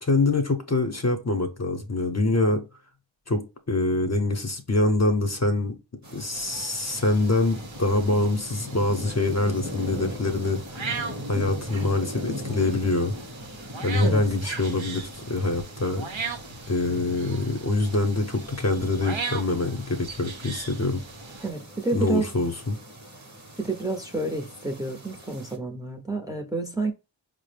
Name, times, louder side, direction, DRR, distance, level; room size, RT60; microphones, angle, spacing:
voice 1, 0.0-2.6 3.3-5.8 6.1-10.6 11.3-13.1 13.8-16.1 16.7-21.0 21.9-22.8, left 2 dB, 35° left, 0.7 m, -25 dB
sound 1, 6.0-25.6, equal, 40° right, 0.9 m, -40 dB
sound 2, 6.3-21.5, right 5 dB, 80° right, 0.7 m, -39 dB
voice 2, 14.0-14.4 21.4-22.3 23.6-26.9, right 2 dB, 10° right, 0.6 m, -29 dB
4.8 x 2.0 x 3.3 m
wide cardioid pair, 50°, 45 cm